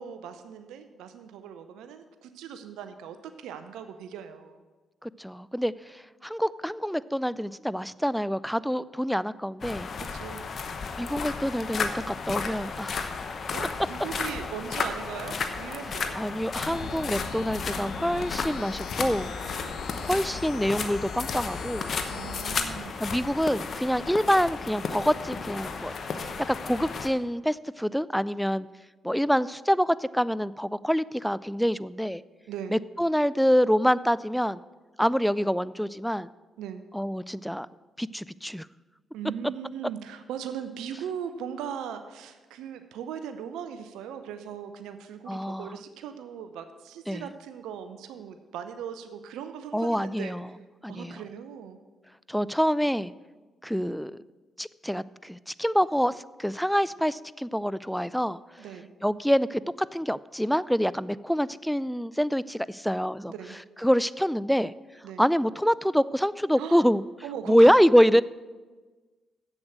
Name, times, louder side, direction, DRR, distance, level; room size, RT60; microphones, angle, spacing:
voice 1, 0.0-4.6 10.0-10.5 13.5-16.2 19.4-19.8 22.1-22.9 32.5-32.8 36.6-36.8 39.1-50.3 50.9-51.8 58.6-58.9 63.3-63.6 65.0-65.2 66.6-66.9 67.2-67.7, right 8 dB, 80° right, 9 dB, 0.6 m, -39 dB
voice 2, 5.0-9.9 11.0-13.2 16.2-19.3 20.0-21.9 23.0-28.7 29.0-32.2 32.7-34.6 35.0-36.3 36.9-37.7 38.0-38.7 45.3-45.8 47.1-47.3 49.7-50.5 50.8-51.2 52.3-53.1 53.6-54.1 54.6-58.4 59.0-63.3 63.8-64.7 65.2-67.0 67.5-68.2, equal, ahead, 18 dB, 0.4 m, -26 dB
sound 1, 9.6-27.1, left 5 dB, 55° left, 1.0 m, -34 dB
sound 2, 16.5-22.5, left 5 dB, 80° left, 1.1 m, -39 dB
7.9 x 7.3 x 7.9 m, 1.3 s
hypercardioid pair, 45°, 0 cm